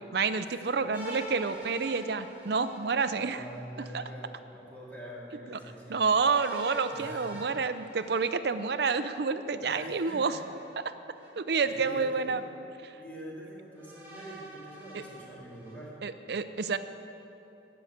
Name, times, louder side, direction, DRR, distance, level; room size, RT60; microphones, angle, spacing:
voice 1, 0.0-3.4 3.9-4.0 5.5-5.6 5.9-10.4 10.8-10.9 11.4-12.4 12.8-12.9 14.9-15.0 16.0-16.8, right 4 dB, 60° right, 11 dB, 0.5 m, -29 dB
sound 1, 0.9-3.6 6.0-9.0 10.3-11.3 12.0-12.1 13.8-15.7, right 1 dB, 10° right, 2.5 m, -46 dB
voice 2, 3.1-6.0 6.9-7.6 9.5-10.4 11.3-11.4 11.6-12.4 13.0-16.0, equal, 10° left, -6 dB, 2.5 m, -45 dB
12.5 x 6.3 x 7.8 m, 3.0 s
head